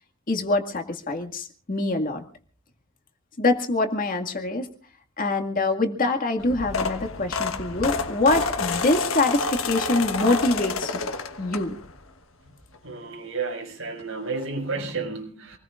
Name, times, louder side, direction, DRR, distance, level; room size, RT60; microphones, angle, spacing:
voice 1, 0.3-2.2 3.4-4.7 5.2-11.0 11.4-11.7, left 2 dB, 45° left, 5 dB, 2.1 m, -24 dB
sound 1, 6.4-12.0 12.5-12.8 14.0-14.1 14.3-14.4 14.8-14.9, left 4 dB, 85° left, 1.4 m, -29 dB
voice 2, 12.8-15.6, right 4 dB, 80° right, 2 dB, 6.1 m, -31 dB
27.5 x 20.0 x 2.5 m, 0.41 s
head